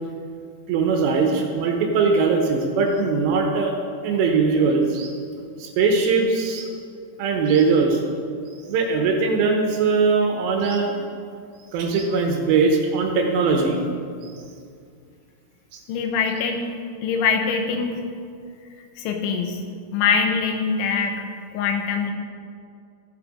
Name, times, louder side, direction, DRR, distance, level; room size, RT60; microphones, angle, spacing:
voice 1, 0.7-3.7 4.0-5.1 5.6-6.7 7.2-8.0 8.7-11.0 11.7-13.8 14.2-14.3 15.7-15.8, right 4 dB, 75° right, 2 dB, 2.9 m, -20 dB
voice 2, 15.9-16.7 17.0-18.0 19.0-19.6 19.9-21.2 21.5-22.1, left 6 dB, 85° left, 3 dB, 3.3 m, -23 dB
15.0 x 6.7 x 5.0 m, 2.3 s
omnidirectional pair, 5.5 m